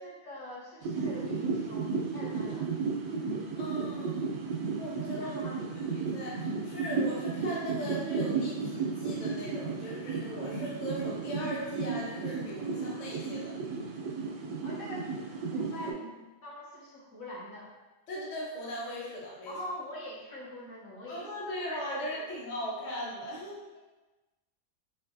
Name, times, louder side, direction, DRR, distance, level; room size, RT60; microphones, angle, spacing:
voice 1, 0.0-2.7 5.0-5.6 14.6-15.1 15.5-17.7 19.5-21.3 21.7-22.4, left 1 dB, 65° left, -4 dB, 1.1 m, -44 dB
sound 1, 0.8-15.9, right 4 dB, 80° right, 1.1 m, -34 dB
voice 2, 3.6-4.3 4.8-5.4 5.7-13.6 18.1-19.6 21.1-23.6, equal, 45° left, -5 dB, 0.6 m, -39 dB
4.6 x 2.5 x 2.6 m, 1.1 s
omnidirectional pair, 1.8 m